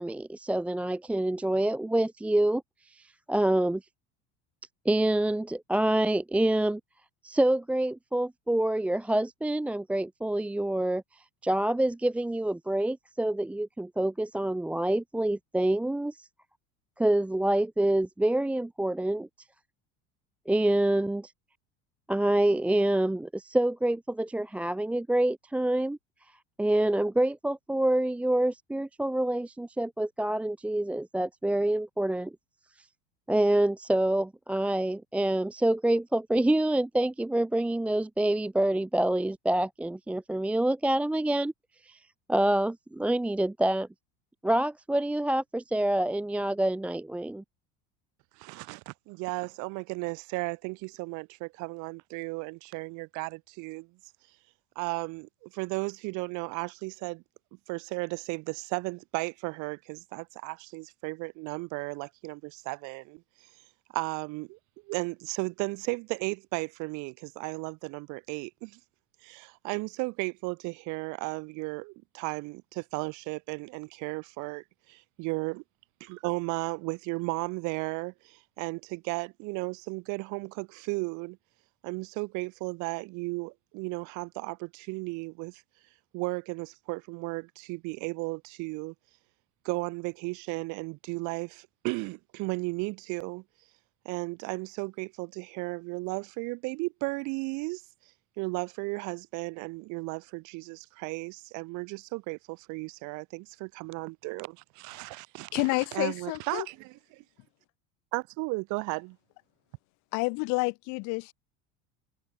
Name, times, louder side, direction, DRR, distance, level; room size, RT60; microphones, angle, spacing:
voice 1, 0.0-3.8 4.9-6.8 7.2-16.3 17.0-19.3 20.5-21.3 22.1-26.0 26.6-32.3 33.3-41.5 41.8-42.0 42.3-43.9 44.4-47.4, right 1 dB, 5° right, 0.5 m, -27 dB
voice 2, 48.4-53.9 54.8-57.2 57.7-63.2 63.9-64.6 64.9-68.8 69.2-75.6 76.0-81.4 81.8-85.6 86.1-88.9 89.6-93.4 94.1-97.8 98.4-107.2 108.1-109.2, right 28 dB, 60° right, 2.1 m, -35 dB
voice 3, 105.5-106.7 110.1-111.3, left 29 dB, 60° left, 1.5 m, -29 dB
cardioid pair, 150°, 33 cm